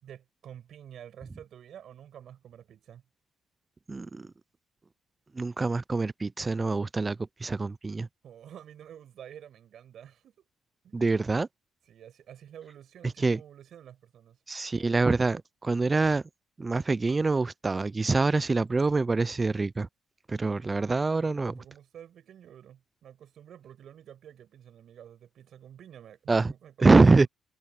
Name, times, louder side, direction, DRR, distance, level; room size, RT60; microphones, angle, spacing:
voice 1, 0.0-3.0 8.2-10.4 10.8-11.0 11.9-14.4 21.1-27.3, right 9 dB, 65° right, 7.4 m, -49 dB
voice 2, 3.9-4.3 5.3-8.1 10.9-11.5 13.2-13.4 14.5-16.2 16.6-19.9 20.3-21.5 26.3-26.5 26.8-27.3, right 3 dB, 25° right, 0.3 m, -25 dB
cardioid pair, 90°, 0 cm